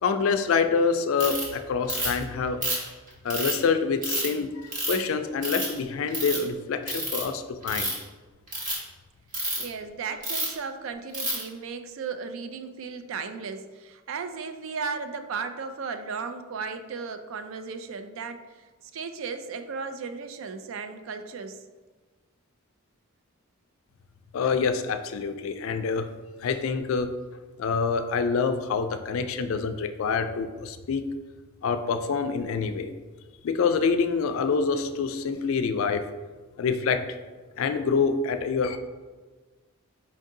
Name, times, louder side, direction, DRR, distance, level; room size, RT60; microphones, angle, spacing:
voice 1, 0.0-2.6 3.2-7.9 24.3-26.1 26.4-27.1 27.6-31.0 31.6-32.9 33.4-36.0 36.6-37.0 37.6-38.8, left 5 dB, 65° left, 8 dB, 0.3 m, -26 dB
Ratchet pawl, 1.2-1.4 1.9-2.2 2.6-3.6 4.0-4.3 4.7-5.0 5.4-5.8 6.1-6.4 6.9-7.2 7.6-8.0 8.5-8.7 9.3-9.6 10.2-10.5 11.1-11.4, right 1 dB, 35° right, 1.1 m, -29 dB
voice 2, 9.6-18.4 18.9-21.6, right 5 dB, 65° right, 9 dB, 0.3 m, -35 dB
4.5 x 2.6 x 3.7 m, 1.3 s
head